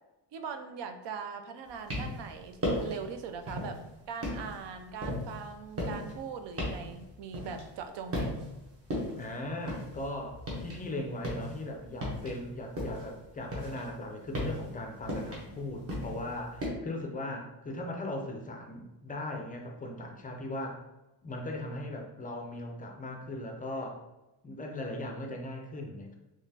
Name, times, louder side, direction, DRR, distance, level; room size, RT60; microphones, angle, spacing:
voice 1, 0.3-8.4, right 6 dB, 75° right, 7 dB, 0.5 m, -41 dB
sound 1, 1.7-2.3 2.6-3.0 3.5-3.8 4.2-7.9 8.1-8.6 8.9-10.8 11.1-13.1 13.5-16.7, left 1 dB, 35° right, 1.0 m, -35 dB
voice 2, 9.2-20.8 21.2-24.0 24.4-26.2, left 1 dB, 20° left, 1 dB, 0.4 m, -38 dB
3.9 x 3.0 x 2.7 m, 0.98 s
cardioid pair, 175°, 42 cm